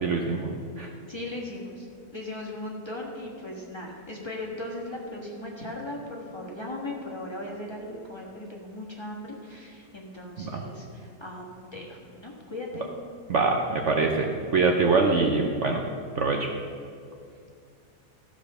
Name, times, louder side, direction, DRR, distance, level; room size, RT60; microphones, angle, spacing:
voice 1, 0.0-0.9 10.4-10.6 13.3-15.8 16.2-16.5, right 4 dB, 55° right, 2 dB, 0.9 m, -24 dB
voice 2, 1.1-1.9 2.1-12.9, left 1 dB, 20° left, -3 dB, 1.4 m, -38 dB
14.0 x 4.9 x 6.8 m, 2.4 s
omnidirectional pair, 1.7 m